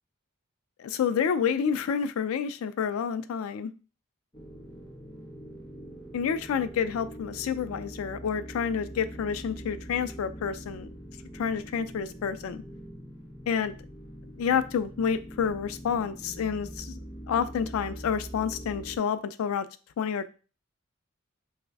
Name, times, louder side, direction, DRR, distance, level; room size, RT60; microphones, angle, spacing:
voice 1, 0.8-3.7 6.1-10.9 11.3-12.6 13.5-13.7 14.4-17.0 17.3-19.7 20.0-20.3, left 7 dB, 80° left, 13 dB, 0.3 m, -29 dB
sound 1, 4.3-19.0, equal, 20° left, 0.6 m, -43 dB
3.2 x 2.1 x 3.4 m, 0.35 s
head